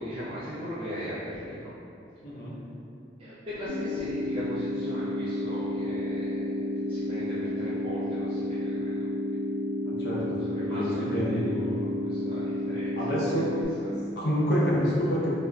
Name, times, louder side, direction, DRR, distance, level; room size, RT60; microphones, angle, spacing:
voice 1, 0.0-1.7 2.3-2.5 3.2-9.1 10.4-13.4 13.9-14.0, equal, 30° right, -11 dB, 0.4 m, -39 dB
voice 2, 2.2-2.6 9.9-10.4 10.7-11.5 13.0-13.5 14.2-15.3, equal, 60° left, -5 dB, 0.6 m, -27 dB
sound 1, 3.7-13.7, left 1 dB, 80° right, 0.7 m, -31 dB
2.4 x 2.0 x 3.3 m, 2.6 s
head